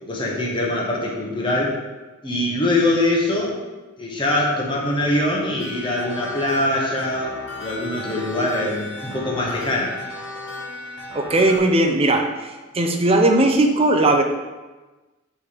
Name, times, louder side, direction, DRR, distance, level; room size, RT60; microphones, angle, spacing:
voice 1, 0.0-1.7 2.2-3.6 4.0-7.3 7.6-10.0, left 1 dB, 20° left, -3 dB, 1.0 m, -23 dB
sound 1, 5.6-11.6, left 2 dB, 60° left, 1.7 m, -35 dB
voice 2, 11.1-14.2, right 2 dB, 25° right, 4 dB, 0.5 m, -18 dB
7.0 x 3.3 x 5.1 m, 1.2 s
head